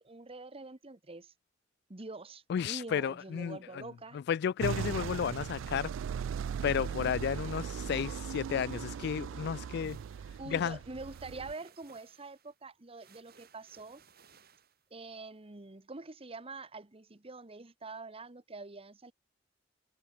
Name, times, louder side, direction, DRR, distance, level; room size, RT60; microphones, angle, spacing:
voice 1, 0.0-1.3 1.9-4.2 10.4-14.0 14.9-19.1, right 3 dB, 30° right, 1.2 m, -45 dB
voice 2, 2.5-3.8 4.1-5.9 6.6-10.0 10.5-10.8, left 8 dB, 60° left, 0.3 m, -33 dB
sound 1, 4.6-11.5, right 7 dB, 85° right, 0.3 m, -38 dB
sound 2, 9.4-15.1, right 6 dB, 55° right, 6.5 m, -63 dB
head